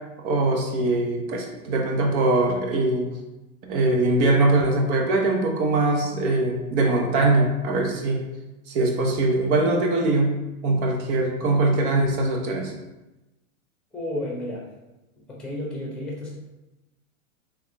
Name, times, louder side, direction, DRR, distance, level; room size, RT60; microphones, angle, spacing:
voice 1, 0.2-3.1 3.7-8.2 8.7-10.4 10.6-12.7, right 2 dB, 55° right, 1 dB, 0.9 m, -22 dB
voice 2, 13.9-14.6 15.3-16.3, left 1 dB, ahead, -3 dB, 1.1 m, -31 dB
3.5 x 3.1 x 3.3 m, 1.0 s
supercardioid pair, 135°, 42 cm